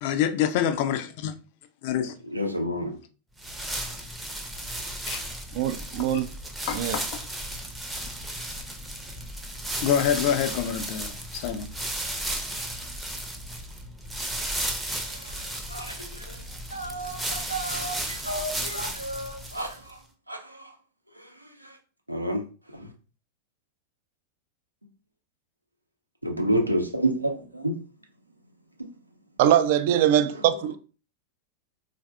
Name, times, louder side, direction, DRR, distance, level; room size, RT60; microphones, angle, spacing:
voice 1, 0.0-1.3 1.8-2.2 5.1-5.2 6.7-7.2 9.8-11.7, left 9 dB, 50° left, 0.4 m, -26 dB
voice 2, 2.3-3.0 14.9-16.4 16.7-20.0 20.3-20.7 21.2-21.8 22.1-22.4 22.7-22.9 26.2-27.8, right 1 dB, 85° right, 0.6 m, -30 dB
sound 1, 3.4-19.9, right 1 dB, 5° right, 0.5 m, -34 dB
voice 3, 5.5-6.3 6.7-7.0 29.4-30.8, right 11 dB, 50° right, 0.3 m, -22 dB
3.9 x 2.5 x 2.2 m
figure-of-eight pair, 90°, 0 cm